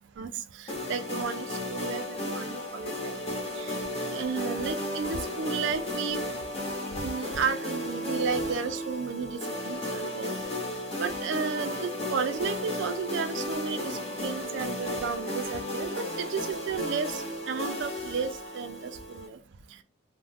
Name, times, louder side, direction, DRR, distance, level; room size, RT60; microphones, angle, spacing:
voice 1, 0.6-3.2 3.6-3.7 4.1-6.2 7.0-10.4 11.0-18.3 18.5-19.4, right 5 dB, 65° right, 10 dB, 0.3 m, -33 dB
sound 1, 0.7-19.3, left 1 dB, 30° left, 0.7 m, -34 dB
2.4 x 2.1 x 3.2 m, 0.32 s
head